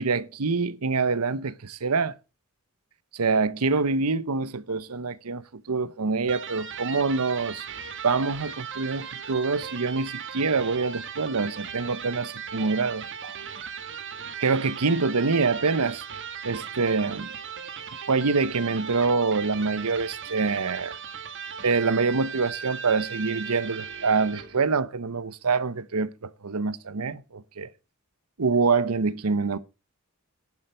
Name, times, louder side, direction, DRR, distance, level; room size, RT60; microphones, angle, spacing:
voice 1, 0.0-2.1 3.1-7.6 8.0-13.4 14.4-16.0 16.4-17.3 18.1-21.0 21.6-27.7 28.4-29.6, right 4 dB, 85° right, 0.8 m, -25 dB
Electric guitar, 6.2-24.6, right 7 dB, 55° right, 1.6 m, -38 dB
11.0 x 7.7 x 5.6 m
head